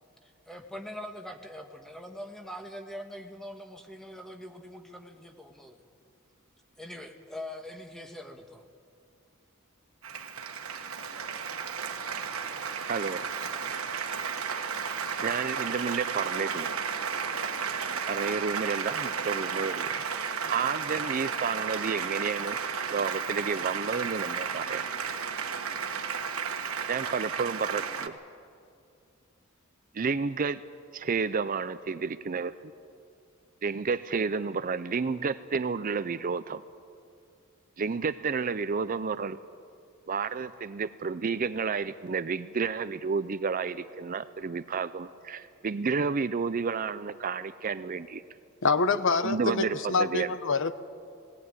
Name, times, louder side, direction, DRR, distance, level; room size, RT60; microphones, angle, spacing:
voice 1, 0.2-5.8 6.8-8.6, left 1 dB, ahead, 4 dB, 1.5 m, -43 dB
Applause, 10.0-28.1, right 6 dB, 80° right, 1.3 m, -33 dB
voice 2, 12.8-13.3 15.2-16.7 18.1-19.9 20.5-22.6 22.9-24.9 26.9-28.1 29.9-30.6 30.9-32.7 33.6-36.6 37.8-39.4 40.1-48.2 49.2-50.3, right 5 dB, 40° right, 13 dB, 0.5 m, -31 dB
voice 3, 48.6-50.7, left 4 dB, 60° left, 12 dB, 0.9 m, -26 dB
19.0 x 18.0 x 9.7 m, 2.4 s
head